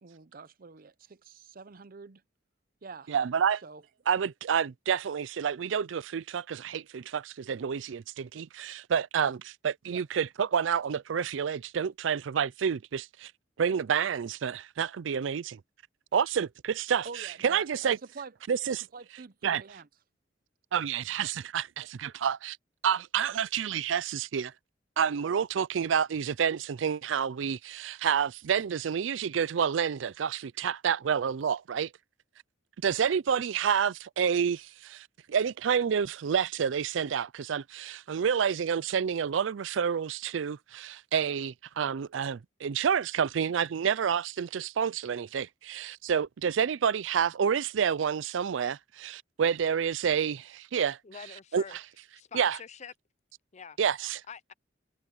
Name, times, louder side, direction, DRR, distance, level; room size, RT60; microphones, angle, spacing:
voice 1, 0.0-2.2 2.8-3.1 3.6-3.8 9.9-10.0 17.0-18.3 18.9-19.9, right 4 dB, 50° right, 0.7 m, -45 dB
voice 2, 3.1-3.6 4.1-13.3 13.6-15.6 16.1-18.0 18.5-18.8 19.4-19.6 20.7-22.6 22.8-24.5 25.0-31.9 32.8-51.0 51.5-51.8 52.3-52.6 53.8-54.2, right 7 dB, 90° right, 0.4 m, -29 dB
voice 3, 51.0-51.8 52.1-52.9 53.5-53.8 54.3-54.5, left 6 dB, 40° left, 0.6 m, -45 dB
head